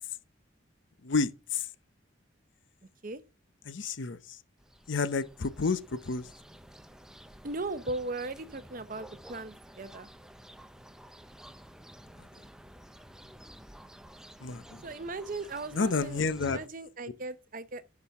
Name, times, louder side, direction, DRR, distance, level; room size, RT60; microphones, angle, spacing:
voice 1, 1.0-1.7 3.7-4.4 4.9-6.3 12.2-12.3 14.4-14.8 15.7-16.6, left 4 dB, 65° left, 0.7 m, -30 dB
sound 1, 4.6-16.7, right 1 dB, 5° right, 0.4 m, -52 dB
voice 2, 7.4-10.1 14.8-17.8, right 2 dB, 40° right, 0.7 m, -38 dB
11.5 x 6.1 x 3.5 m
head